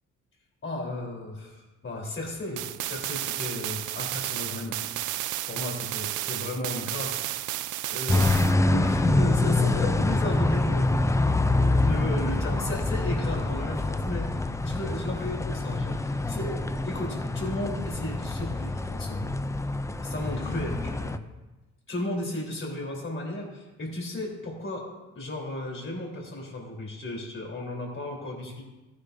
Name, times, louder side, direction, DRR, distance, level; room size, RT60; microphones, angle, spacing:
voice 1, 0.6-4.9 5.5-7.6 7.9-19.3 20.0-21.2 21.9-24.9 25.1-28.6, left 1 dB, 40° left, -1 dB, 3.8 m, -35 dB
sound 1, 2.6-8.5, right 14 dB, 80° right, 0.5 m, -32 dB
sound 2, 8.1-21.2, left 2 dB, 10° left, 0.4 m, -26 dB
14.5 x 10.0 x 2.7 m, 1.1 s
cardioid pair, 90°, 30 cm